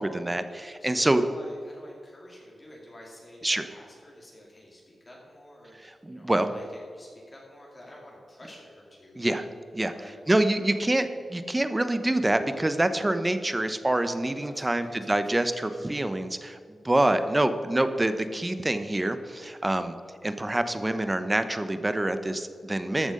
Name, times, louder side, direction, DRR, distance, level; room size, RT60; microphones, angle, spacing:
voice 1, 0.0-1.2 3.4-3.6 5.8-6.5 9.1-9.5 9.7-9.9 10.3-16.6 16.8-19.9 20.2-23.1, right 1 dB, 20° right, 10 dB, 0.8 m, -26 dB
voice 2, 0.8-9.2 10.0-10.8 14.4-15.9 17.2-17.3, left 1 dB, 35° left, -3 dB, 2.6 m, -50 dB
14.0 x 6.0 x 5.4 m, 2.2 s
cardioid pair, 65°, 0 cm